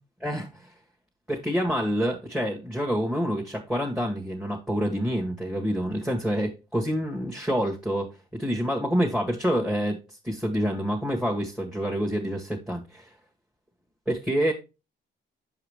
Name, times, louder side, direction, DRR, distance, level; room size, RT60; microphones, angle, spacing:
voice 1, 0.2-0.7 1.3-8.1 8.4-10.0 10.2-13.1 14.1-14.5, equal, 5° right, 1.7 m, -27 dB
7.2 x 4.9 x 3.5 m
cardioid pair, 90°, 20 cm